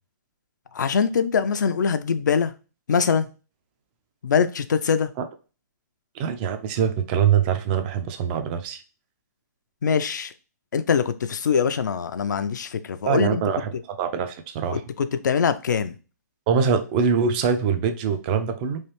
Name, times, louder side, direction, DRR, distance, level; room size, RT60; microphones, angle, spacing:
voice 1, 0.7-2.5 2.9-3.3 4.2-5.1 9.8-10.3 10.7-13.4 14.7-16.0, left 6 dB, 75° left, 0.4 m, -23 dB
voice 2, 6.2-8.8 13.1-14.8 16.5-18.8, right 7 dB, 30° right, 0.4 m, -23 dB
3.1 x 2.4 x 3.0 m
hypercardioid pair, 140°, 10 cm